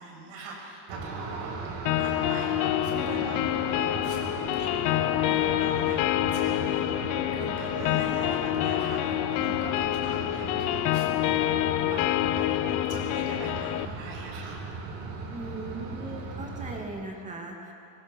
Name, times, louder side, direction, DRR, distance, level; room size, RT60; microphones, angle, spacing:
voice 1, 0.0-1.5 1.9-4.2 4.5-14.6, right 3 dB, 75° right, -1 dB, 7.6 m, -42 dB
sound 1, 0.9-16.8, right 3 dB, 60° right, 3.8 m, -37 dB
sound 2, 1.9-13.9, left 16 dB, 75° left, 0.9 m, -27 dB
voice 2, 15.3-17.7, right 2 dB, 15° right, 0 dB, 2.8 m, -38 dB
25.0 x 22.0 x 6.3 m, 2.5 s
cardioid pair, 180°, 45 cm